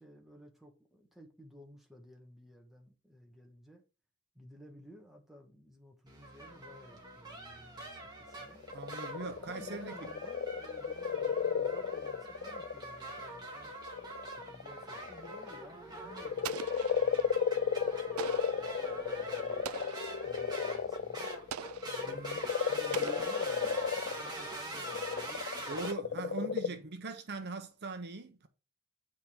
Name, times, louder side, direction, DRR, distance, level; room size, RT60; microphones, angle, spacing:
voice 1, 0.0-3.8 4.4-8.6 9.4-13.7 14.3-19.7 20.2-21.3 21.8-22.3 22.7-26.9, equal, ahead, 1.6 m, -55 dB
sound 1, 6.1-25.9, right 2 dB, 20° right, 2.2 m, -44 dB
sound 2, 8.3-13.3 13.8-15.5 16.0-26.7, left 6 dB, 50° left, 0.4 m, -34 dB
voice 2, 8.7-10.1 22.1-22.4 25.7-28.5, right 3 dB, 50° right, 0.8 m, -41 dB
Explosion, 16.4-17.3 18.2-18.7 19.6-20.2 21.5-22.0 22.9-23.8, right 9 dB, 80° right, 0.4 m, -43 dB
9.3 x 4.2 x 3.6 m
head